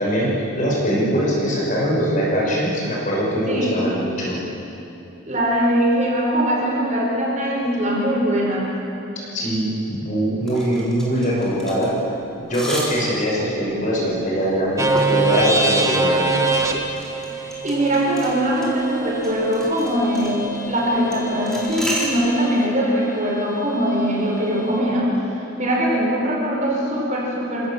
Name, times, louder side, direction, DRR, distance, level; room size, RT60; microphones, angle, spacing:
voice 1, 0.0-4.4 9.3-12.0 12.5-16.4, equal, 35° left, -4 dB, 6.1 m, -22 dB
voice 2, 3.5-3.9 5.3-8.7 17.3-25.1 25.6-27.7, equal, 35° right, -4 dB, 5.2 m, -21 dB
sound 1, 10.4-22.1, right 1 dB, ahead, 4.3 m, -34 dB
sound 2, 14.8-22.7, right 3 dB, 15° right, 1.4 m, -25 dB
28.0 x 17.5 x 7.6 m, 3.0 s
head